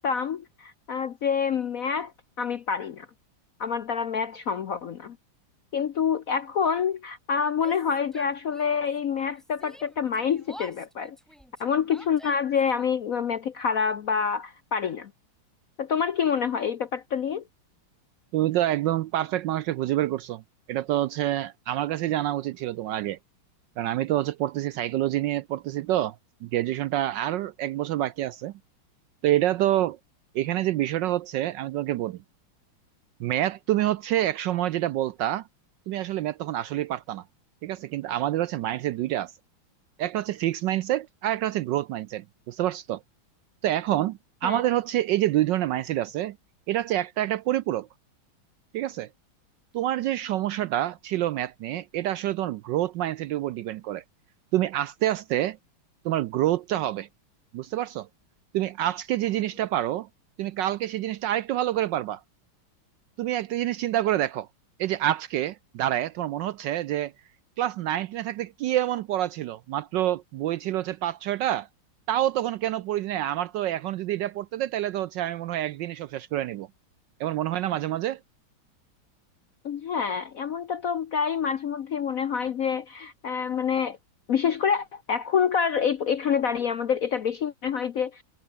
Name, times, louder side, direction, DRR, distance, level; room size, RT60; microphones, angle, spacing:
voice 1, 0.0-2.1 2.4-3.1 3.6-5.2 5.7-11.2 11.6-15.1 15.8-17.4 44.4-44.6 79.6-84.0 84.3-88.2, left 7 dB, 60° left, 0.9 m, -27 dB
Yell, 7.5-9.0 9.2-12.7, equal, ahead, 7.1 m, -48 dB
voice 2, 18.3-20.4 20.7-23.2 23.8-26.2 26.4-28.5 29.2-30.0 30.3-32.2 33.2-35.5 35.9-37.2 37.6-39.3 40.0-43.0 43.6-46.4 46.7-47.9 48.7-49.1 49.7-54.0 54.5-55.6 56.0-57.1 57.5-58.1 58.5-60.1 60.4-62.2 63.2-64.5 64.8-67.1 67.6-71.7 72.1-76.7 77.2-78.2, right 13 dB, 75° right, 1.1 m, -27 dB
omnidirectional pair, 2.3 m